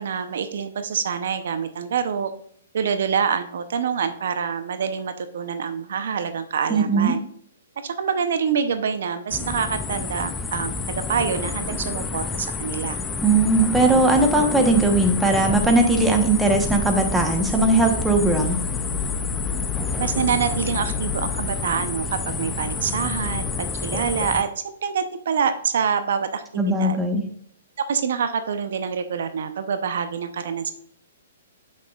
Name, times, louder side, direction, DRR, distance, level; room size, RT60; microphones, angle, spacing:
voice 1, 0.0-2.3 2.7-7.2 7.8-13.0 20.0-27.0 27.9-30.7, right 7 dB, 70° right, 10 dB, 0.6 m, -26 dB
voice 2, 6.7-7.1 13.2-18.6 26.6-27.2, right 2 dB, 10° right, 3 dB, 1.0 m, -19 dB
sound 1, 9.3-24.4, left 4 dB, 10° left, 0.4 m, -29 dB
sound 2, 18.0-23.9, left 7 dB, 80° left, 0.6 m, -32 dB
7.6 x 6.3 x 2.4 m, 0.63 s
hypercardioid pair, 145°, 0 cm